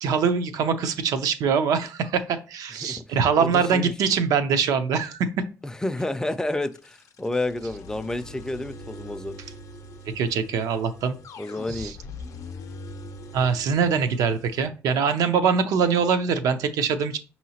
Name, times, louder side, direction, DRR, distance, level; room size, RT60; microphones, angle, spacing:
voice 1, 0.0-5.3 10.2-11.2 11.7-11.9 13.3-17.2, right 6 dB, 85° right, 0.5 m, -23 dB
voice 2, 2.8-3.9 5.6-9.4 11.4-11.9, left 2 dB, 10° left, 0.4 m, -30 dB
sound 1, 6.1-14.7, left 2 dB, 65° left, 0.5 m, -42 dB
5.5 x 2.8 x 2.8 m
cardioid pair, 100°, 6 cm